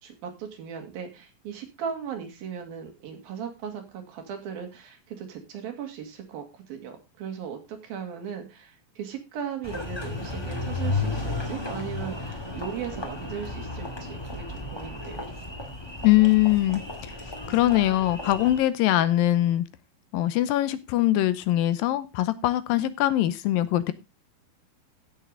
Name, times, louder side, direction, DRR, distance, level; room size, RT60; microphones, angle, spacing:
voice 1, 0.0-15.2, right 7 dB, 85° right, 4 dB, 4.0 m, -37 dB
Engine, 9.6-18.6, left 2 dB, 10° left, 1.1 m, -33 dB
voice 2, 16.0-16.8 17.5-19.6 20.1-23.9, left 14 dB, 85° left, 14 dB, 2.5 m, -22 dB
15.5 x 6.7 x 3.8 m, 0.25 s
omnidirectional pair, 4.2 m